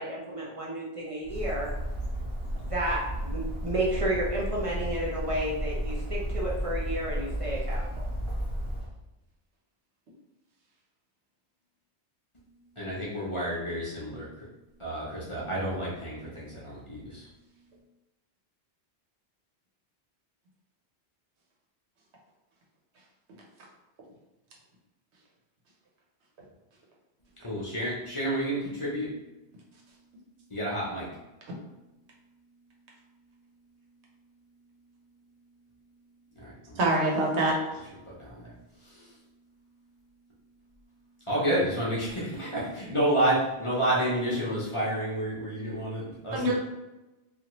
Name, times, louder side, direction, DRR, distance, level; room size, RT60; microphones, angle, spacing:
voice 1, 0.0-1.7 2.6-8.1, right 1 dB, 40° right, -5 dB, 0.5 m, -32 dB
Bird, 1.2-8.9, equal, 20° right, 1.1 m, -33 dB
voice 2, 12.8-14.3 14.8-17.3 27.4-29.1 30.5-31.1 36.4-36.8 38.1-38.5 38.8-39.1 41.3-46.5, right 1 dB, 30° left, -7 dB, 0.7 m, -30 dB
voice 3, 36.8-37.6 46.3-46.5, right 2 dB, 80° right, -2 dB, 1.1 m, -24 dB
2.7 x 2.5 x 2.9 m, 1.0 s
omnidirectional pair, 1.1 m